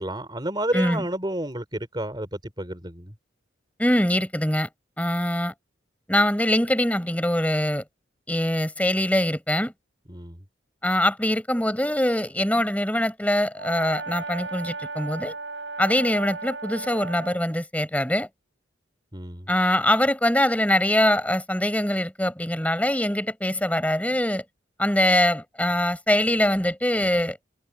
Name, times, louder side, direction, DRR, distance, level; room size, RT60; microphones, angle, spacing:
voice 1, 0.0-3.1 10.1-10.4 19.1-19.5, right 1 dB, 25° right, 4.3 m, -30 dB
voice 2, 0.7-1.1 3.8-4.7 5.0-5.5 6.1-7.8 8.3-9.7 10.8-15.3 15.8-18.3 19.5-24.4 24.8-27.4, left 1 dB, 10° left, 5.1 m, -23 dB
Brass instrument, 13.5-17.4, right 3 dB, 75° right, 6.5 m, -35 dB
head